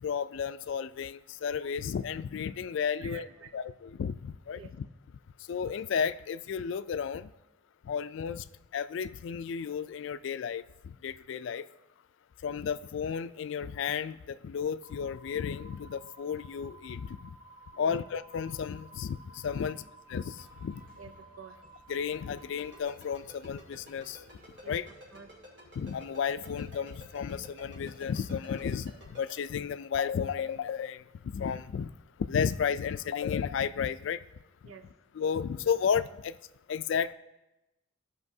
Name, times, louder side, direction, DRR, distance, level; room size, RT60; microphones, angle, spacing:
voice 1, 0.0-4.9 5.5-7.3 7.8-8.4 8.7-11.6 12.4-17.3 17.8-19.8 20.1-20.8 21.9-24.2 24.7-24.9 25.8-31.0 31.3-31.9 32.2-34.2 35.2-36.4 36.7-37.1, left 7 dB, 65° left, 13 dB, 0.3 m, -33 dB
voice 2, 2.9-3.5 4.5-4.7 17.7-18.0 19.6-19.8 21.0-21.6 24.6-25.3 34.6-34.9, right 5 dB, 90° right, 8 dB, 0.6 m, -50 dB
sound 1, 14.8-22.8, right 2 dB, 25° right, 0.4 m, -55 dB
sound 2, 20.3-28.2, right 1 dB, 45° right, 0.8 m, -61 dB
Ringtone, 22.6-29.3, equal, 65° right, 3.1 m, -50 dB
15.0 x 5.5 x 2.7 m, 0.98 s
head